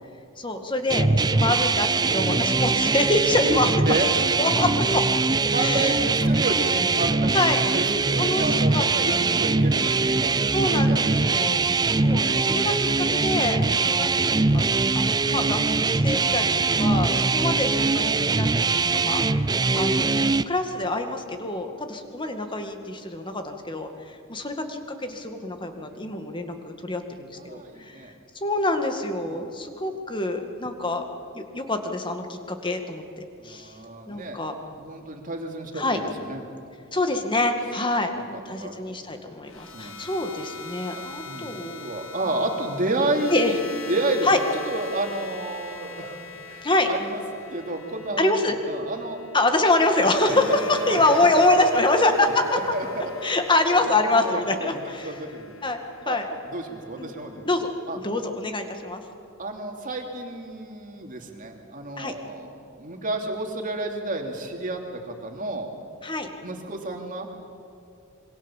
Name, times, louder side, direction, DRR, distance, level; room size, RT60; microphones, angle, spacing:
voice 1, 0.4-3.7 4.0-4.1 4.4-5.0 5.6-6.0 6.2-6.3 7.3-7.6 8.2-8.5 8.7-8.8 9.1-9.4 10.5-11.6 12.0-14.7 14.9-15.6 15.9-19.5 19.7-31.0 31.3-33.0 33.4-33.7 34.1-34.6 35.7-36.0 36.9-41.9 43.3-43.5 44.2-44.4 46.6-46.9 48.2-48.6 49.3-52.3 53.2-55.2 55.6-56.2 57.0-57.1 57.5-57.7 58.0-59.0 62.0-62.1 66.0-66.3, left 2 dB, 25° left, 5 dB, 2.0 m, -26 dB
sound 1, 0.9-20.4, right 3 dB, 20° right, 0.5 m, -22 dB
voice 2, 5.5-7.3 7.7-10.5 10.9-11.1 13.3-13.5 17.0-17.3 21.6-21.8 23.9-24.0 25.9-26.0 27.3-28.1 29.2-29.5 33.4-34.4 34.7-36.4 38.1-39.0 39.7-39.9 41.3-43.6 43.9-44.3 44.6-46.2 46.5-48.3 48.6-49.2 50.3-51.5 52.0-53.4 53.7-53.9 54.1-54.7 55.0-55.6 56.1-56.2 56.5-57.5 57.9-58.0 59.4-65.7 66.4-67.3, right 2 dB, 40° right, 2 dB, 2.9 m, -31 dB
sound 2, 39.5-57.6, left 5 dB, 70° left, 1.9 m, -41 dB
26.5 x 23.5 x 7.4 m, 2.6 s
head